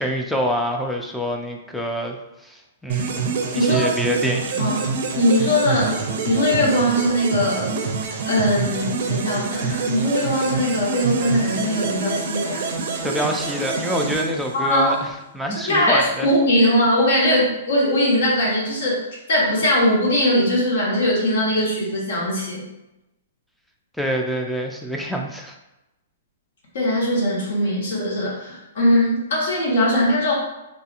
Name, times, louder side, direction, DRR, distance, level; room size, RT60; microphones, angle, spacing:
voice 1, 0.0-2.2 2.4-3.3 3.5-4.6 13.0-16.3 24.0-25.6, equal, ahead, 1 dB, 0.3 m, -26 dB
sound 1, 2.9-15.0, right 5 dB, 60° right, 0.4 m, -26 dB
voice 2, 3.5-3.9 4.6-4.8 5.1-6.0 6.3-7.7 8.3-12.6 14.5-15.0 15.7-19.0 19.3-22.7 26.7-30.3, equal, 70° left, -4 dB, 1.1 m, -20 dB
2.7 x 2.4 x 2.4 m, 0.94 s
hypercardioid pair, 135°, 0 cm